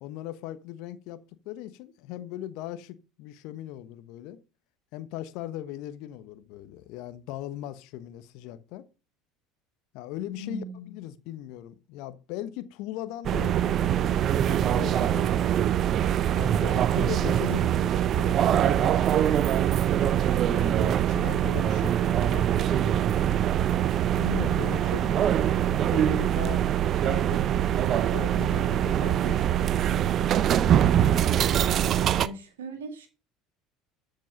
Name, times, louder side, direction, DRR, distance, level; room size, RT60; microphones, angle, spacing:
voice 1, 0.0-4.4 4.9-8.9 9.9-15.6 16.3-19.6 20.5-23.0 24.2-26.7 27.0-30.8, left 13 dB, 65° left, 1.0 m, -39 dB
voice 2, 10.4-11.0 32.1-33.1, right 2 dB, 80° right, 2.0 m, -39 dB
sound 1, 13.2-32.3, right 10 dB, 45° right, 0.6 m, -23 dB
13.0 x 5.3 x 5.6 m
hypercardioid pair, 70°, 0 cm